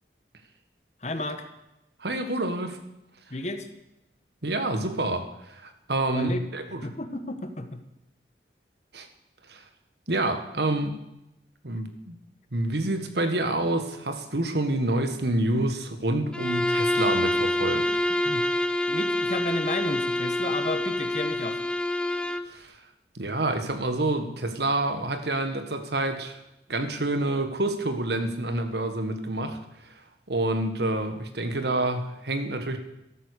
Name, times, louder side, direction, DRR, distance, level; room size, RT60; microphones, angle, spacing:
voice 1, 1.0-1.5 3.3-3.7 6.1-6.4 6.8-7.8 18.2-18.4 18.9-21.6, left 2 dB, 40° left, 8 dB, 1.3 m, -32 dB
voice 2, 2.0-2.8 4.4-6.8 8.9-9.1 9.5-9.6 10.1-11.0 11.6-12.1 12.5-17.9 22.5-22.8 23.1-26.4 26.7-29.9 30.3-32.8, right 2 dB, 70° right, 7 dB, 1.6 m, -28 dB
Bowed string instrument, 16.3-22.5, left 1 dB, 5° left, 0.6 m, -26 dB
13.5 x 13.0 x 6.6 m, 0.88 s
head